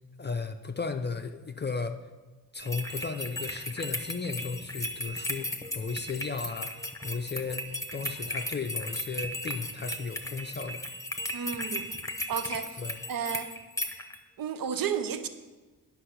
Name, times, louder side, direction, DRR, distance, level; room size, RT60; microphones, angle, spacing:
voice 1, 0.2-2.0 2.5-6.7 7.0-10.8 12.8-13.0, left 4 dB, 30° left, 6 dB, 0.5 m, -35 dB
sound 1, 2.6-14.2, left 1 dB, 10° left, 0.8 m, -36 dB
voice 2, 11.3-11.9 12.3-12.8 13.1-13.5 14.4-15.3, right 7 dB, 65° right, 10 dB, 0.7 m, -32 dB
9.8 x 5.8 x 5.9 m, 1.2 s
wide cardioid pair, 95°, 37 cm